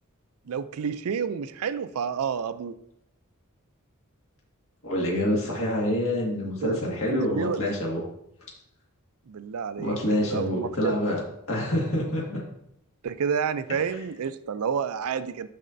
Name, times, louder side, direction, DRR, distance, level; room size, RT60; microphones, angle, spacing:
voice 1, 0.5-2.7 6.6-6.8 7.1-7.8 9.3-11.0 13.0-15.5, right 6 dB, 75° right, 12 dB, 0.4 m, -29 dB
voice 2, 4.8-8.0 9.8-11.2 11.5-12.4 13.7-13.8, left 1 dB, 65° left, -3 dB, 1.8 m, -27 dB
12.0 x 4.2 x 2.6 m, 0.76 s
head